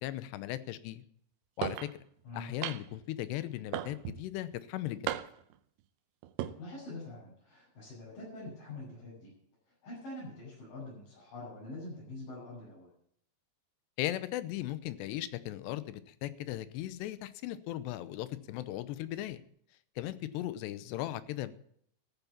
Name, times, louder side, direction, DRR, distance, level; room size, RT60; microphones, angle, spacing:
voice 1, 0.0-1.0 1.6-1.9 2.3-5.2 14.0-19.4 20.0-21.6, left 14 dB, 80° left, 15 dB, 2.9 m, -37 dB
sound 1, 1.6-1.9 2.6-3.0 3.7-4.2 5.1-5.5 6.2-6.5, right 13 dB, 80° right, 2.7 m, -35 dB
voice 2, 2.2-2.6 6.4-9.3 9.7-12.9, left 2 dB, 50° left, -9 dB, 8.9 m, -45 dB
14.5 x 9.6 x 7.1 m, 0.66 s
omnidirectional pair, 5.0 m